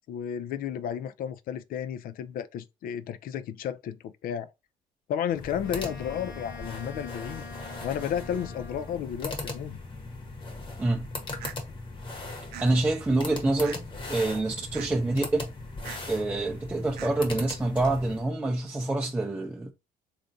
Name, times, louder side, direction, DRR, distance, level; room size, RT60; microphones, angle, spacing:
voice 1, 0.1-4.5 5.1-7.4 7.8-9.8, left 9 dB, 60° left, 0.4 m, -33 dB
sound 1, 5.3-18.3, left 3 dB, 30° left, 1.0 m, -39 dB
Wind instrument woodwind instrument, 5.6-9.1, left 4 dB, 90° left, 0.8 m, -45 dB
sound 2, 11.4-11.6 12.5-12.7 13.6-14.0 14.7-14.9 15.8-16.0 17.0-17.1, right 9 dB, 70° right, 0.4 m, -40 dB
voice 2, 12.6-15.5 16.1-19.7, right 2 dB, 10° right, 0.5 m, -27 dB
3.4 x 2.5 x 2.6 m
cardioid pair, 110°, 17 cm